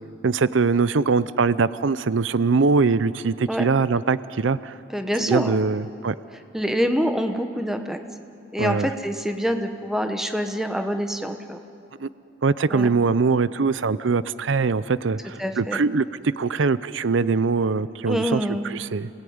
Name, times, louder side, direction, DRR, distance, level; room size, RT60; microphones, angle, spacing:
voice 1, 0.2-4.8 5.2-6.1 8.6-8.9 12.0-12.1 12.4-16.1 16.4-19.1, right 4 dB, 85° right, 16 dB, 0.6 m, -22 dB
voice 2, 4.9-5.6 6.5-8.0 8.5-11.6 12.7-12.9 15.4-15.8 18.1-18.6, equal, ahead, 6 dB, 1.1 m, -25 dB
28.0 x 18.5 x 9.5 m, 2.8 s
head